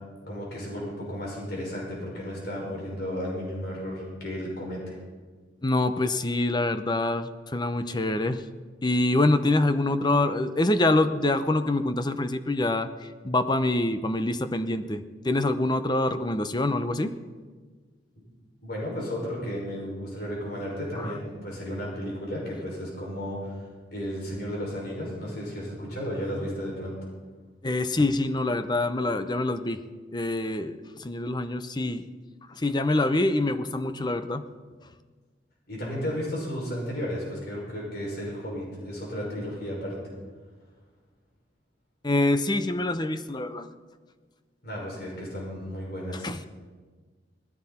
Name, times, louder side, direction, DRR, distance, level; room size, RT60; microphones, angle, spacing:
voice 1, 0.3-5.0 18.6-23.6 23.9-27.0 35.7-40.0 44.6-46.3, equal, 60° left, -4 dB, 6.0 m, -33 dB
voice 2, 5.6-8.4 8.8-12.9 13.2-17.1 21.0-21.1 27.6-29.8 30.1-32.0 32.6-34.4 42.0-43.7 46.2-46.4, left 2 dB, 25° left, 10 dB, 0.7 m, -25 dB
20.0 x 14.5 x 4.3 m, 1.4 s
head